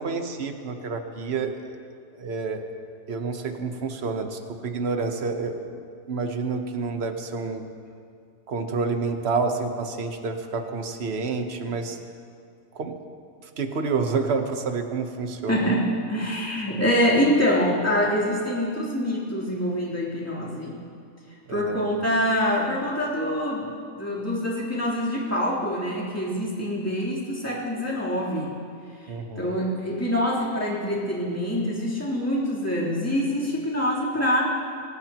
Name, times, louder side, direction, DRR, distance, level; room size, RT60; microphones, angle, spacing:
voice 1, 0.0-1.8 2.2-2.6 3.1-5.8 6.1-7.6 8.5-12.0 12.7-13.0 13.6-15.7 21.5-21.8 29.1-29.5, right 4 dB, 50° right, 5 dB, 1.3 m, -29 dB
voice 2, 15.5-20.8 21.5-23.7 24.0-28.6 29.0-34.5, equal, 10° left, -7 dB, 3.5 m, -25 dB
25.0 x 18.0 x 3.0 m, 2.3 s
omnidirectional pair, 1.5 m